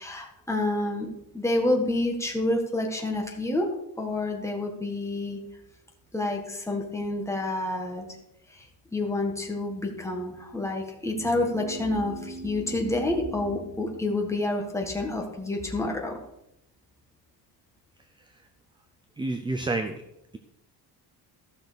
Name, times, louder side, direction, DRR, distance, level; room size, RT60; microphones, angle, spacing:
voice 1, 0.0-3.7 4.0-5.4 6.1-8.0 8.5-8.7 8.9-16.2, left 2 dB, 5° left, 1 dB, 1.5 m, -28 dB
sound 1, 11.0-14.7, right 2 dB, 50° right, 4.0 m, -42 dB
voice 2, 19.2-20.0, right 2 dB, 10° right, 6 dB, 0.4 m, -29 dB
14.5 x 6.1 x 5.1 m, 0.82 s
cardioid pair, 180°, 41 cm